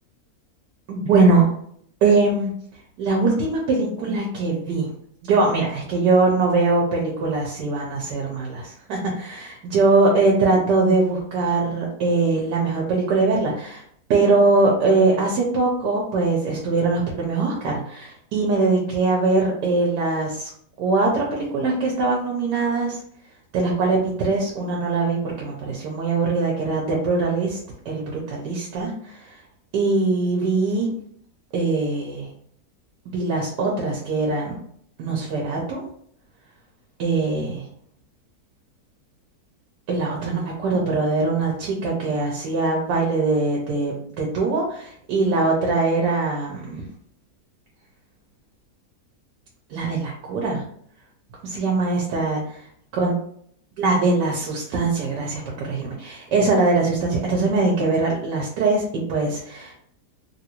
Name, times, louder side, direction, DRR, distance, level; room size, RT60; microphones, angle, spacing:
voice 1, 0.9-1.4 2.0-2.5 3.0-4.9 5.2-13.8 14.1-20.5 20.8-23.0 23.5-27.6 27.8-29.4 29.7-30.9 31.5-32.3 33.1-34.6 35.0-35.8 37.0-37.7 39.9-46.8 49.7-50.6 51.4-52.7 53.0-53.1 53.8-59.7, right 3 dB, 85° right, -2 dB, 1.3 m, -22 dB
3.4 x 2.6 x 2.9 m, 0.65 s
omnidirectional pair, 1.8 m